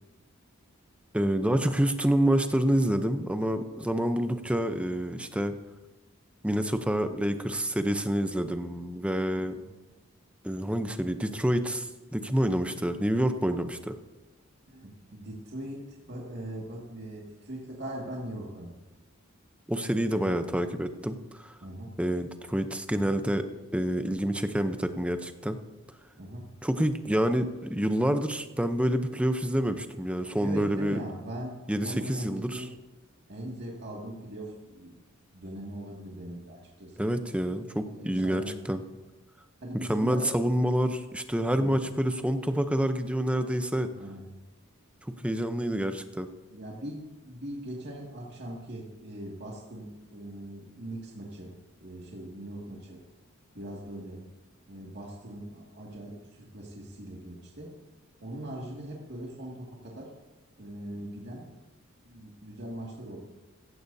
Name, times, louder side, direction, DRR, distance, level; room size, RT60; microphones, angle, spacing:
voice 1, 1.1-5.5 6.4-9.6 10.4-13.9 19.7-21.6 22.0-23.5 23.7-25.6 26.6-31.0 31.7-32.6 37.0-38.8 39.7-43.9 45.2-46.3, equal, 5° right, 8 dB, 0.7 m, -27 dB
voice 2, 14.7-18.8 20.1-20.4 21.6-21.9 26.1-26.5 30.4-31.5 31.8-32.7 33.3-35.0 35.3-37.1 37.9-38.8 39.6-40.3 41.6-41.8 43.9-44.3 46.5-51.5 51.8-53.0 53.5-54.2 54.7-57.7 58.2-60.1 60.6-61.5 62.0-63.2, right 1 dB, 55° right, -3 dB, 2.1 m, -40 dB
15.5 x 15.5 x 2.7 m, 1.1 s
head